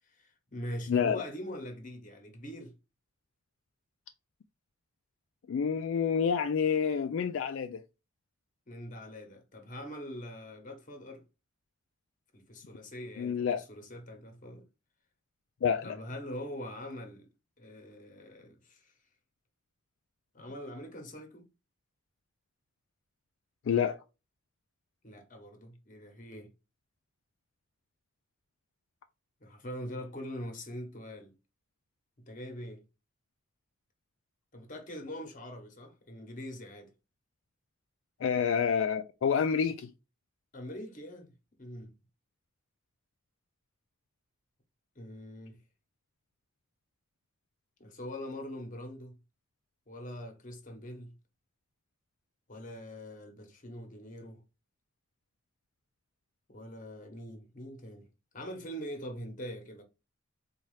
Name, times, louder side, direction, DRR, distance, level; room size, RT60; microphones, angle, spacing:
voice 1, 0.1-2.7 8.7-11.2 12.3-14.6 15.8-17.3 17.6-18.9 20.3-21.5 25.0-26.5 29.4-31.3 32.3-32.8 34.5-36.9 40.5-41.3 41.6-41.9 45.0-45.6 47.8-49.2 49.9-51.1 52.5-54.4 56.5-58.1 58.3-59.8, equal, 40° left, 0.9 m, -43 dB
voice 2, 0.9-1.2 5.5-7.8 13.2-13.7 15.6-16.0 23.7-24.0 38.2-39.9, left 7 dB, 70° left, 0.3 m, -28 dB
4.2 x 2.3 x 3.1 m
head